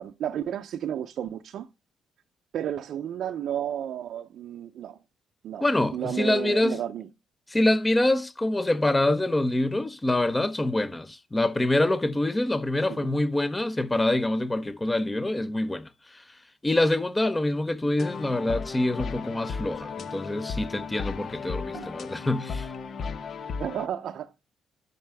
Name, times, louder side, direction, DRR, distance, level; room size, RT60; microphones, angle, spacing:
voice 1, 0.0-1.7 2.5-5.0 5.4-5.6 5.9-7.1 12.9-13.0 21.7-21.9 23.6-24.4, right 10 dB, 70° right, 0.6 m, -32 dB
voice 2, 5.6-6.8 7.5-16.2 16.6-22.7, left 1 dB, 15° left, 0.8 m, -25 dB
sound 1, 18.0-23.9, left 5 dB, 50° left, 0.8 m, -35 dB
10.5 x 5.6 x 3.4 m
cardioid pair, 90°, 0 cm